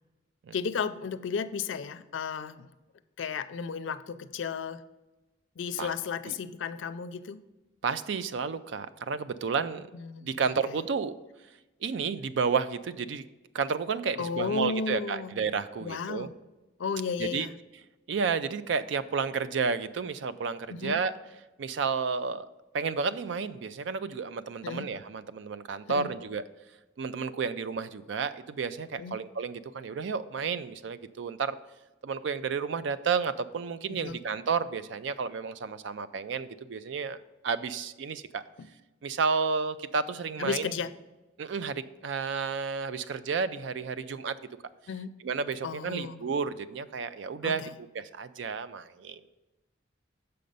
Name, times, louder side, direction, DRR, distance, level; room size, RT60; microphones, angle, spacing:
voice 1, 0.5-2.7 3.2-4.8 5.6-7.4 9.9-10.5 14.2-15.4 15.8-16.3 16.8-17.5 20.7-21.0 24.6-24.9 25.9-26.1 29.0-29.2 34.0-34.2 38.6-38.7 40.4-40.9 44.9-45.2 45.6-46.3 47.4-47.7, left 5 dB, 80° left, 12 dB, 0.4 m, -34 dB
voice 2, 7.8-9.9 10.2-11.2 11.8-13.2 13.5-16.3 17.2-17.5 18.1-21.2 21.6-22.5 22.7-26.4 27.0-31.6 32.0-38.4 39.0-40.8 41.4-44.4 45.2-47.6 47.9-49.3, right 5 dB, 70° right, 13 dB, 0.4 m, -31 dB
6.8 x 5.1 x 5.3 m, 1.1 s
head